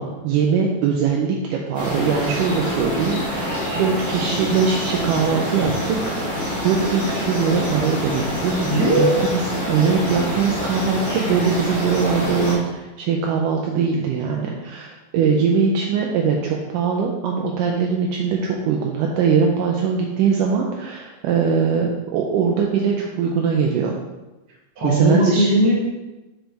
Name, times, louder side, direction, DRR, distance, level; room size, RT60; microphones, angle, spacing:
voice 1, 0.0-9.4 9.7-23.9 24.8-25.5, right 6 dB, 80° right, 0 dB, 2.0 m, -21 dB
sound 1, 1.7-12.5, equal, 10° left, 0.9 m, -26 dB
voice 2, 8.7-9.2 24.8-25.8, right 1 dB, 50° right, -3 dB, 2.0 m, -18 dB
6.1 x 5.2 x 3.4 m, 1.1 s
omnidirectional pair, 4.0 m